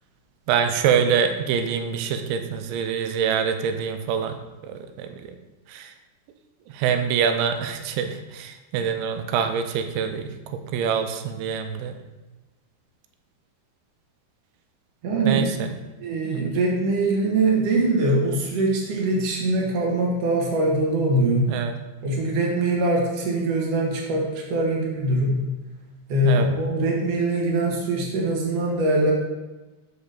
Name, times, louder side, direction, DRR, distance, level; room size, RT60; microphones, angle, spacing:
voice 1, 0.5-4.3 5.0-5.1 5.7-5.9 6.7-12.0 15.2-15.7 16.3-16.5 21.5-21.8 26.2-26.5, right 7 dB, 90° right, 7 dB, 3.0 m, -25 dB
voice 2, 15.0-15.5 16.0-21.5 22.0-25.4 26.1-29.1, right 2 dB, 55° right, -1 dB, 1.8 m, -22 dB
7.1 x 5.2 x 6.6 m, 1.1 s
omnidirectional pair, 5.3 m